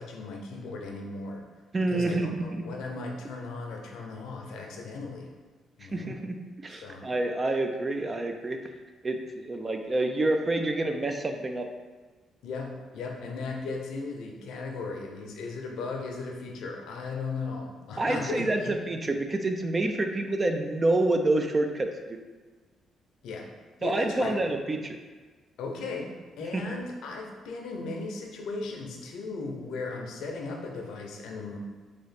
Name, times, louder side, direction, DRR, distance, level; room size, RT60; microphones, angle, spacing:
voice 1, 0.0-1.4 1.8-5.3 5.8-6.2 6.7-7.1 12.4-18.8 19.0-19.1 23.2-23.5 23.8-24.4 25.6-31.6, left 3 dB, 80° left, 1 dB, 0.6 m, -37 dB
voice 2, 1.7-2.7 5.9-8.6 9.0-11.7 18.0-21.9 23.8-25.0 26.5-26.6, right 2 dB, 30° right, 5 dB, 0.3 m, -28 dB
3.1 x 3.0 x 4.1 m, 1.3 s
cardioid pair, 90°, 0 cm